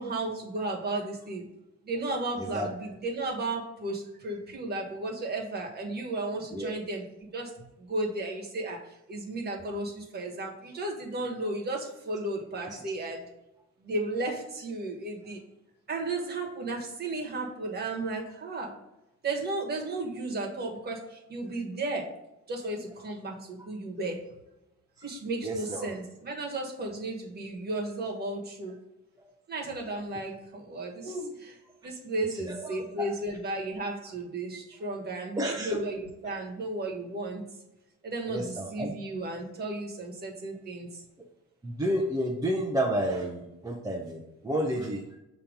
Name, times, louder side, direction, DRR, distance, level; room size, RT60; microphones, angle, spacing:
voice 1, 0.0-1.4 1.8-13.2 13.8-15.4 15.9-18.7 19.2-22.1 22.5-24.2 25.0-28.8 29.5-31.5 31.8-37.4 38.0-41.0, right 2 dB, 35° right, 0 dB, 1.3 m, -34 dB
voice 2, 25.4-25.9 31.0-31.3 32.5-33.1 35.4-35.8 38.3-38.9 41.6-45.0, right 1 dB, 10° right, 0 dB, 0.5 m, -31 dB
6.7 x 2.9 x 5.1 m, 0.93 s
wide cardioid pair, 175°, 30 cm